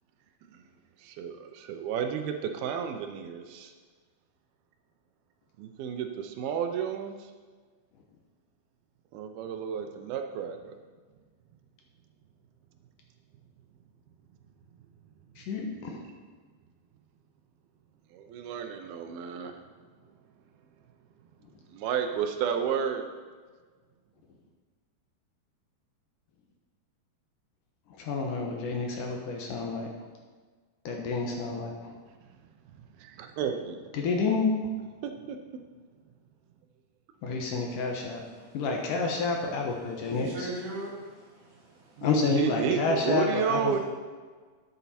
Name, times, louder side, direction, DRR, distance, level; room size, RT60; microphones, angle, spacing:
voice 1, 1.0-3.7 5.6-7.2 9.1-10.7 18.1-19.5 21.7-23.0 33.0-33.8 35.0-35.4 42.0-42.1 42.3-43.8, right 8 dB, 80° right, 5 dB, 2.7 m, -31 dB
voice 2, 15.4-16.0 28.0-29.9 30.9-31.9 33.9-34.5 37.2-38.2 38.5-40.5 42.0-43.8, left 4 dB, 70° left, 1 dB, 2.4 m, -29 dB
voice 3, 37.4-38.6 40.0-42.1, right 1 dB, 45° right, -4 dB, 3.2 m, -42 dB
12.5 x 8.1 x 4.3 m, 1.5 s
omnidirectional pair, 4.4 m